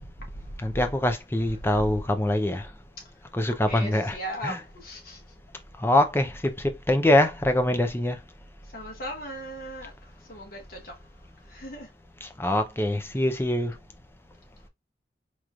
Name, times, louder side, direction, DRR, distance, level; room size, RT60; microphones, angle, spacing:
voice 1, 0.6-2.7 3.3-4.2 4.4-4.6 5.8-8.2 12.2-13.7, left 1 dB, 15° left, 0.5 m, -24 dB
voice 2, 3.7-5.2 8.7-11.0 11.5-11.9, equal, 50° left, 1.0 m, -38 dB
4.8 x 3.0 x 2.4 m
head